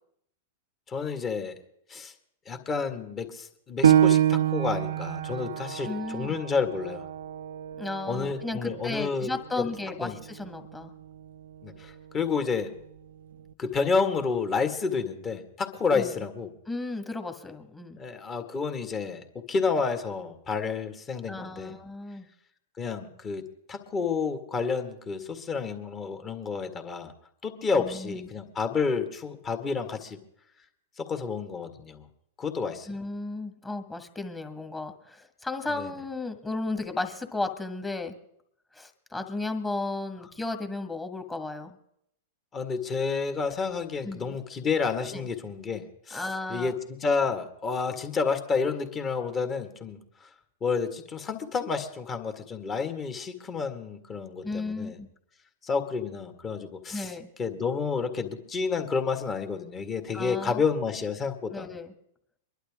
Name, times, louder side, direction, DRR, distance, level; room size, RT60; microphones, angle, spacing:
voice 1, 0.9-1.5 1.9-2.1 2.5-7.1 8.1-9.7 10.0-10.2 11.6-12.7 13.6-16.5 18.0-21.7 22.8-27.1 27.4-30.2 31.0-32.1 32.4-32.9 35.8-35.9 42.5-50.3 50.6-55.0 55.6-57.1 57.4-61.7, left 5 dB, 25° left, 6 dB, 1.8 m, -30 dB
Piano, 3.8-9.0 9.5-9.6 10.2-10.7, right 10 dB, 80° right, 0.6 m, -26 dB
voice 2, 5.8-6.4 7.8-10.9 15.9-16.1 16.7-18.0 21.3-22.3 27.7-28.3 32.9-38.2 38.7-41.8 44.0-44.4 45.1-45.3 46.1-46.7 54.4-55.1 56.9-57.3 60.1-60.6 61.5-61.9, left 2 dB, 10° left, 6 dB, 1.7 m, -34 dB
23.5 x 11.5 x 3.6 m, 0.72 s
hypercardioid pair, 105°, 0 cm